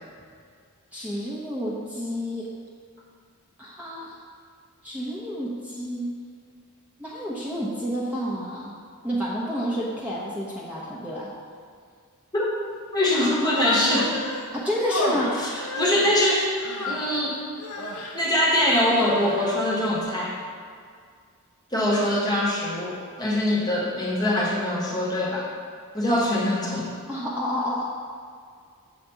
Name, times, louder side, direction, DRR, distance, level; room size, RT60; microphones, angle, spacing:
voice 1, 0.9-2.5 3.6-4.2 4.8-6.1 7.0-8.7 9.0-11.3 14.5-15.4 27.1-27.8, equal, 5° right, -7 dB, 1.0 m, -29 dB
voice 2, 12.9-14.1 15.4-16.5 16.9-17.4 18.1-20.3 21.7-25.5 25.9-26.9, left 1 dB, 20° left, -4 dB, 1.4 m, -23 dB
Human voice, 13.3-14.5 14.9-17.2 17.6-18.2 18.8-19.5, left 1 dB, 85° left, 0.9 m, -31 dB
7.5 x 4.3 x 6.9 m, 2.1 s
head